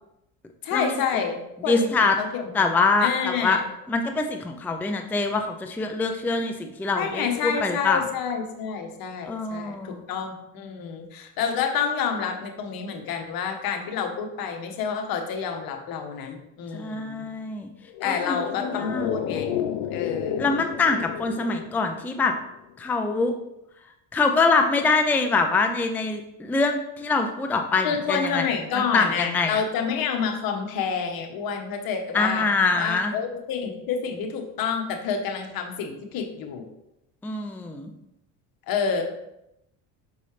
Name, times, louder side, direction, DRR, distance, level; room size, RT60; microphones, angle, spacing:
voice 1, 0.6-1.9 2.2-2.5 3.0-3.6 7.0-17.3 18.0-19.6 19.9-20.5 27.8-32.5 32.7-36.7 38.7-39.0, left 6 dB, 60° left, 4 dB, 1.2 m, -28 dB
voice 2, 1.7-2.2 2.5-3.6 3.9-8.0 9.3-10.0 16.7-17.7 18.0-19.1 20.4-22.3 22.8-23.3 24.1-28.4 28.7-29.6 32.1-33.1 37.2-37.9, left 3 dB, 5° left, 5 dB, 0.4 m, -24 dB
sound 1, 17.9-22.5 22.7-22.8, left 10 dB, 90° left, 0.5 m, -32 dB
5.6 x 5.3 x 3.2 m, 0.85 s
supercardioid pair, 95°, 39 cm